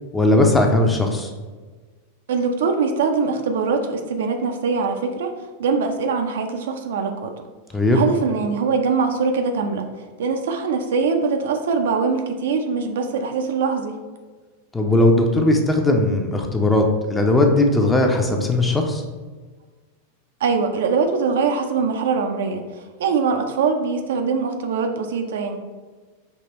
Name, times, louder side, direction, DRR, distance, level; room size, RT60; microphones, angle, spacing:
voice 1, 0.1-1.3 7.7-8.0 14.7-19.0, left 2 dB, 10° left, 3 dB, 0.6 m, -18 dB
voice 2, 2.3-7.3 7.9-9.9 10.2-14.0 20.4-25.6, right 5 dB, 60° right, 5 dB, 0.4 m, -22 dB
5.5 x 2.9 x 2.9 m, 1.4 s
figure-of-eight pair, 90°, 0 cm